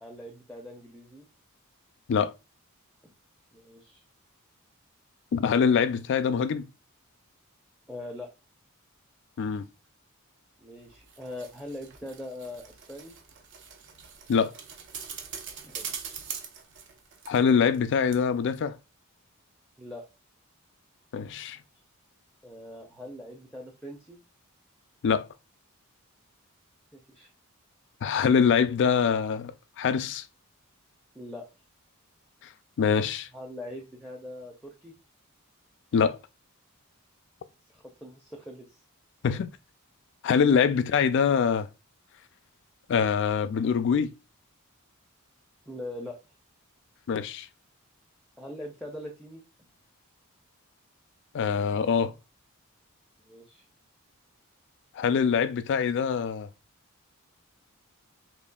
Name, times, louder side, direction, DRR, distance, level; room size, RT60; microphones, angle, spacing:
voice 1, 0.0-1.3 3.0-3.1 3.5-4.0 7.9-8.3 10.6-13.2 15.6-15.9 19.8-20.0 22.4-24.2 26.9-27.3 31.1-31.4 33.3-34.9 37.7-38.8 39.2-39.4 45.7-46.2 48.4-49.4 53.2-53.6, left 1 dB, ahead, 0.5 m, -42 dB
voice 2, 5.3-6.7 9.4-9.6 14.3-14.5 17.3-18.8 21.1-21.6 25.0-25.3 28.0-29.5 29.8-30.2 32.8-33.3 35.9-36.2 39.2-39.5 40.2-41.7 42.9-44.1 47.1-47.5 51.3-52.1 55.0-56.5, left 6 dB, 55° left, 0.3 m, -24 dB
sound 1, 10.8-17.8 18.1-18.2, right 7 dB, 55° right, 0.6 m, -42 dB
4.1 x 3.1 x 2.2 m
head